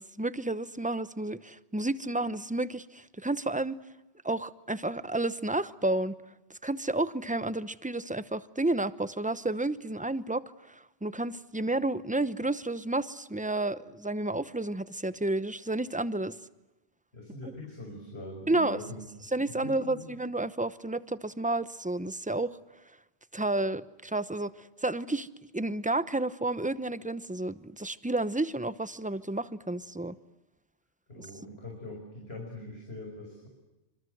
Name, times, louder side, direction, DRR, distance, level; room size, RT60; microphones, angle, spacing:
voice 1, 0.0-3.8 4.2-6.1 6.6-16.3 18.5-18.8 19.3-22.6 23.3-25.3 25.5-30.1, right 2 dB, 10° right, 14 dB, 0.8 m, -31 dB
voice 2, 17.1-20.1 31.1-33.5, left 1 dB, 65° left, 0 dB, 6.0 m, -43 dB
27.5 x 26.5 x 8.0 m, 1.0 s
omnidirectional pair, 1.1 m